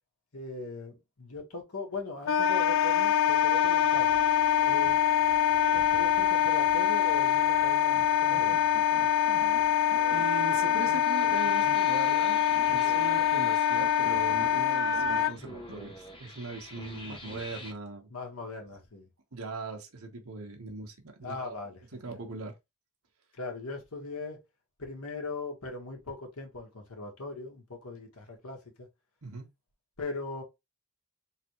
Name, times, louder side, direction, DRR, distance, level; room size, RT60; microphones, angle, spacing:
voice 1, 0.3-4.1 4.6-5.3 5.7-8.7 18.1-19.1 21.2-22.2 23.3-24.4 24.8-28.9 30.0-30.4, left 3 dB, 80° left, 1.6 m, -40 dB
Wind instrument woodwind instrument, 2.3-15.3, left 9 dB, 60° left, 0.4 m, -24 dB
sound 1, 3.5-17.7, left 1 dB, 25° left, 1.2 m, -48 dB
voice 2, 10.1-12.4 12.7-18.1 19.3-22.5 29.2-29.5, right 3 dB, 75° right, 1.3 m, -40 dB
3.9 x 3.5 x 3.1 m
head